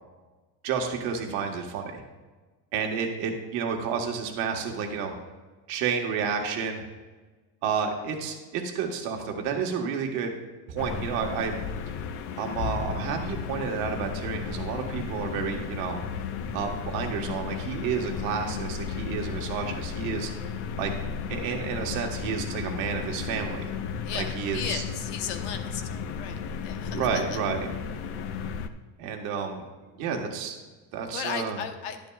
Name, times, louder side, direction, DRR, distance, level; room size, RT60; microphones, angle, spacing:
voice 1, 0.6-2.0 2.7-5.1 5.7-6.8 7.6-10.3 10.7-11.6 12.4-16.0 16.5-20.3 20.7-20.9 21.3-23.7 24.1-24.8 26.9-27.7 29.0-29.6 29.9-30.6 30.9-31.6, right 6 dB, 55° right, 3 dB, 1.4 m, -30 dB
voice 2, 1.2-1.7 24.0-27.4 31.1-32.0, left 8 dB, 75° left, 6 dB, 1.0 m, -36 dB
sound 1, 10.8-28.7, left 6 dB, 35° left, 0.5 m, -34 dB
11.5 x 11.0 x 2.4 m, 1.3 s
cardioid pair, 170°, 37 cm